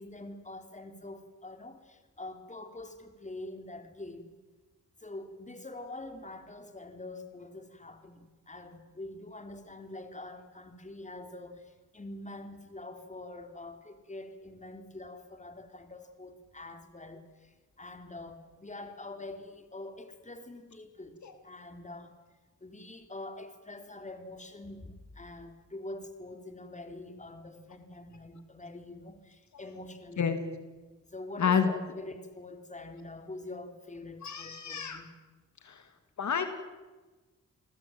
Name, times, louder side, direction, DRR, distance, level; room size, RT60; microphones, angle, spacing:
voice 1, 0.0-4.4 5.0-21.2 21.4-22.2 22.6-30.4 31.1-35.1, left 2 dB, 25° left, 7 dB, 3.8 m, -45 dB
voice 2, 31.4-31.7 34.2-35.0 35.6-35.8 36.2-36.4, left 6 dB, 65° left, 8 dB, 2.7 m, -28 dB
29.0 x 20.0 x 9.1 m, 1.2 s
cardioid pair, 75°, 30 cm